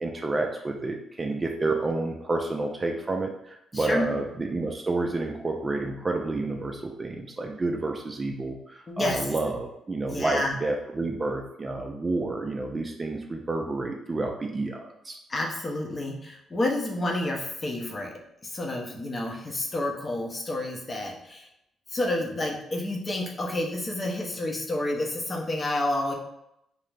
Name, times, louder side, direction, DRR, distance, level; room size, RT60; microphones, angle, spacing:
voice 1, 0.0-15.2, right 2 dB, 25° right, 3 dB, 0.3 m, -29 dB
voice 2, 3.7-4.1 8.9-9.3 10.1-10.5 15.3-21.5 21.9-26.1, left 1 dB, 30° left, 0 dB, 0.6 m, -29 dB
2.3 x 2.0 x 3.2 m, 0.79 s
cardioid pair, 90°, 0 cm